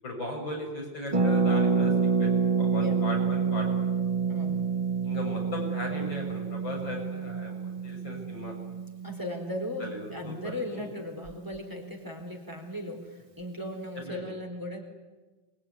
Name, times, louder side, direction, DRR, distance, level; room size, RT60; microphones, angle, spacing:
voice 1, 0.0-1.9 2.2-2.3 2.6-3.7 5.0-8.6 9.8-10.9 14.0-14.2, left 1 dB, 85° left, 0 dB, 8.0 m, -37 dB
Harp, 1.1-10.7 11.0-11.1 11.2-11.6, right 5 dB, 30° right, 0.6 m, -28 dB
voice 2, 4.3-4.7 9.0-14.8, left 1 dB, 10° right, 2 dB, 4.1 m, -37 dB
26.0 x 22.5 x 9.8 m, 1.2 s
omnidirectional pair, 2.0 m